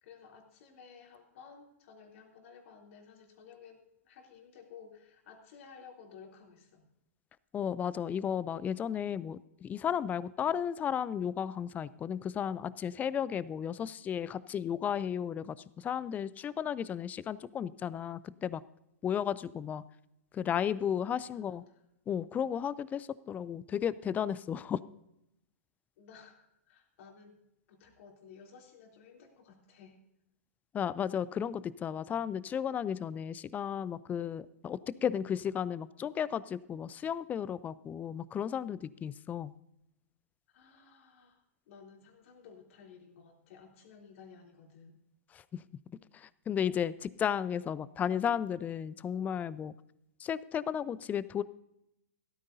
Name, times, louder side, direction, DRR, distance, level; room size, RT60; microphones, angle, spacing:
voice 1, 0.0-6.8 21.3-21.7 26.0-27.4 27.7-30.0 40.5-45.0, left 6 dB, 55° left, 1 dB, 3.2 m, -55 dB
voice 2, 7.5-18.6 19.0-19.8 20.3-21.6 22.1-24.8 30.7-39.5 45.3-45.6 46.1-49.7 50.2-51.4, left 8 dB, 20° left, 19 dB, 0.4 m, -34 dB
16.0 x 13.5 x 2.7 m, 0.84 s
hypercardioid pair, 115°, 8 cm